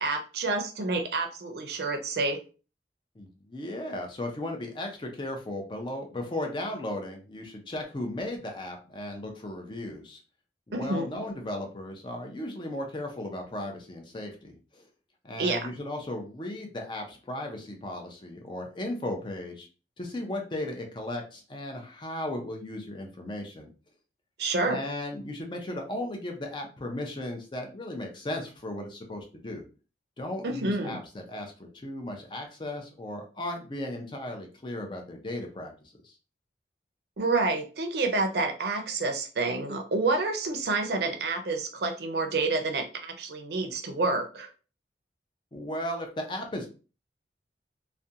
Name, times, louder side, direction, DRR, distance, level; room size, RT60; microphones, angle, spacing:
voice 1, 0.0-2.4 10.7-11.1 15.4-15.7 24.4-24.8 30.4-31.0 37.2-44.5, right 3 dB, 60° right, 4 dB, 0.5 m, -28 dB
voice 2, 3.2-10.2 10.7-14.8 15.2-19.7 20.0-23.7 24.6-29.7 30.2-36.1 45.5-46.7, left 1 dB, 25° left, 3 dB, 0.5 m, -36 dB
2.4 x 2.2 x 2.7 m, 0.35 s
head